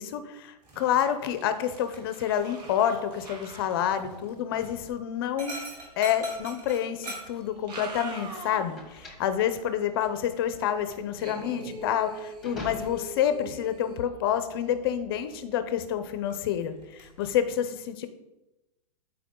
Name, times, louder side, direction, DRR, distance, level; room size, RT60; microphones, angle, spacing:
voice 1, 0.0-5.6 6.0-18.1, left 9 dB, 35° left, 10 dB, 0.6 m, -28 dB
Dog, 0.6-17.2, right 2 dB, 25° right, 2.6 m, -48 dB
sound 1, 1.3-1.7 2.0-4.9 6.3-6.4 7.4-8.9 9.3-9.4 11.2-14.0, right 2 dB, 75° right, 2.0 m, -43 dB
sound 2, 7.4-13.3, left 2 dB, ahead, 1.2 m, -45 dB
12.0 x 4.7 x 3.7 m, 0.98 s
hypercardioid pair, 165°, 21 cm